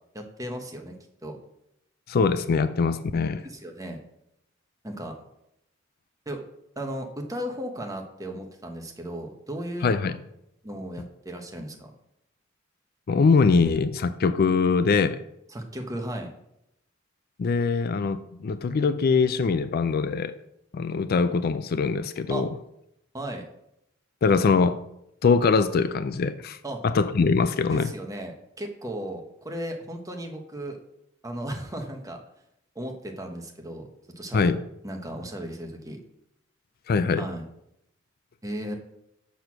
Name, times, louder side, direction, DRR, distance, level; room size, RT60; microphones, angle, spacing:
voice 1, 0.1-1.4 3.4-4.0 4.8-5.2 6.3-6.5 6.8-9.9 10.6-11.9 15.5-16.3 22.3-22.4 23.1-23.5 26.6-26.8 27.7-30.8 31.2-32.2 32.7-33.9 34.2-34.5 34.8-36.0 37.2-37.4 38.4-38.7, right 1 dB, 15° right, 1.1 m, -35 dB
voice 2, 2.1-3.5 9.8-10.2 13.1-15.2 17.4-20.3 20.7-22.5 24.2-24.8 25.2-26.6 26.8-27.9 34.3-34.6 36.9-37.3, left 4 dB, 50° left, 0.4 m, -22 dB
6.6 x 6.2 x 5.9 m
head